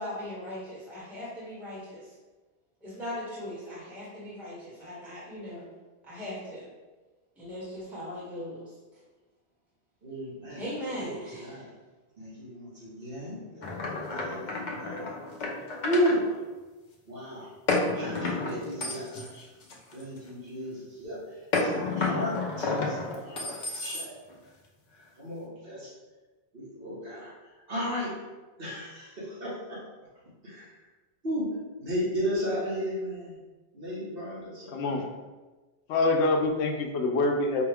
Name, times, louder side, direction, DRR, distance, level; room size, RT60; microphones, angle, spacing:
voice 1, 0.0-2.1 2.8-5.7 6.0-6.6 7.4-8.7 10.6-11.6, left 1 dB, ahead, -8 dB, 1.1 m, -39 dB
voice 2, 10.0-10.6 10.9-11.7 12.2-15.1 15.8-16.3 17.1-17.5 18.0-19.3 19.9-21.2 21.5-24.2 25.2-25.9 26.5-27.3 27.7-28.2 28.6-29.8 30.4-30.7 31.2-31.5 31.8-33.4 33.7-35.0, equal, 60° right, -7 dB, 1.5 m, -34 dB
sound 1, 13.6-16.2 17.7-20.3 21.5-24.4, left 3 dB, 50° left, 0.7 m, -31 dB
voice 3, 34.7-35.1 35.9-37.7, left 2 dB, 80° left, 4 dB, 0.9 m, -25 dB
4.8 x 2.3 x 3.4 m, 1.2 s
omnidirectional pair, 1.1 m